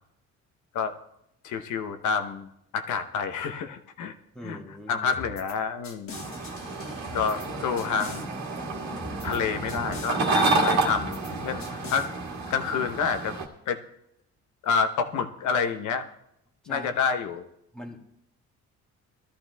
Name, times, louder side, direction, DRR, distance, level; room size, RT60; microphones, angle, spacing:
voice 1, 1.4-2.5 2.7-4.1 4.4-4.6 4.9-6.2 6.8-8.3 9.2-12.1 12.5-13.4 13.7-13.8 14.6-16.1 16.7-17.4, left 6 dB, 75° left, 8 dB, 1.0 m, -28 dB
voice 2, 4.3-5.0 16.6-16.9 17.7-18.0, equal, ahead, 1 dB, 1.6 m, -41 dB
sound 1, 5.1-5.6 5.8-7.5 7.8-8.2 9.0-9.4 9.7-10.2 10.9-11.3 11.6-12.1, left 3 dB, 50° left, 1.5 m, -43 dB
sound 2, 6.1-13.5, right 3 dB, 65° right, 1.9 m, -29 dB
20.0 x 13.0 x 2.3 m, 0.81 s
cardioid pair, 90°, 30 cm